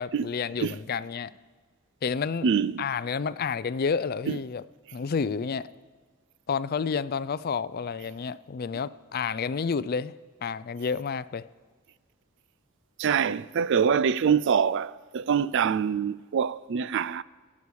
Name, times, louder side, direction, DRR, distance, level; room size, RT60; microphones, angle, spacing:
voice 1, 0.0-1.4 2.0-2.5 2.8-4.6 4.9-5.7 6.5-10.1 10.4-11.5, left 5 dB, 45° left, 0.4 m, -30 dB
voice 2, 2.4-2.9 4.3-4.4 13.0-17.2, right 7 dB, 55° right, 0.4 m, -25 dB
24.0 x 8.5 x 4.8 m
head